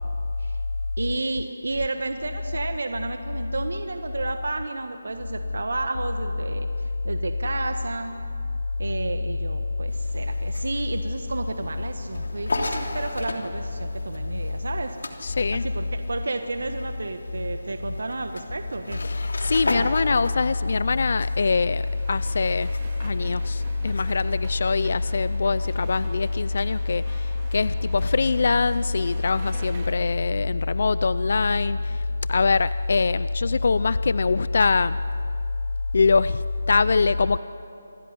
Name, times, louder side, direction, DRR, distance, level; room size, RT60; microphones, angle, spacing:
voice 1, 1.0-8.1 8.8-15.0 15.5-19.0, right 2 dB, 75° right, 6 dB, 1.4 m, -31 dB
sound 1, 9.9-25.9, left 2 dB, 85° left, 3.0 m, -37 dB
voice 2, 15.2-15.7 19.0-22.7 23.0-35.0 35.9-37.4, left 4 dB, 55° left, 16 dB, 0.5 m, -23 dB
sound 2, 21.7-29.9, right 3 dB, 25° right, 2.7 m, -45 dB
27.5 x 16.0 x 10.0 m, 2.9 s
figure-of-eight pair, 170°, 0 cm